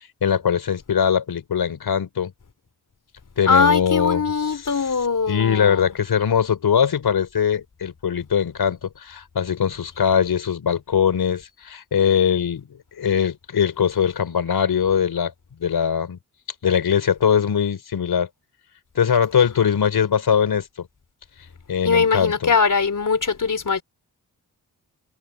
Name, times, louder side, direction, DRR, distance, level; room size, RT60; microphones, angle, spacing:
voice 1, 0.2-2.3 3.4-4.9 5.3-15.3 15.6-16.2 16.6-18.3 18.9-20.9 21.7-22.5, left 7 dB, 70° left, 4.2 m, -21 dB
voice 2, 3.5-5.9 21.8-23.8, left 5 dB, 50° left, 4.4 m, -21 dB
supercardioid pair, 40°, 39 cm